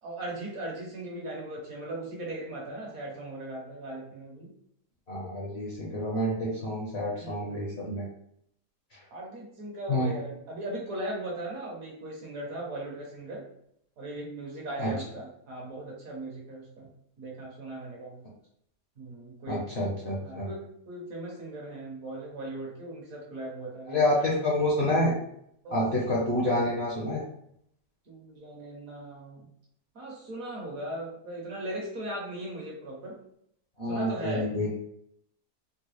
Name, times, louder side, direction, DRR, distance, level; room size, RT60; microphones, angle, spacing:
voice 1, 0.0-4.5 7.2-7.8 9.1-13.4 14.0-16.9 17.2-18.2 19.0-19.7 20.2-24.4 25.6-25.8 28.1-29.5 29.9-33.2 33.9-34.7, right 1 dB, 60° right, -2 dB, 1.2 m, -38 dB
voice 2, 5.1-8.0 9.9-10.2 14.8-14.9 19.5-20.5 23.9-25.1 25.7-27.2 33.8-34.7, left 1 dB, 50° left, -4 dB, 0.8 m, -28 dB
3.8 x 2.2 x 3.0 m, 0.71 s
omnidirectional pair, 1.8 m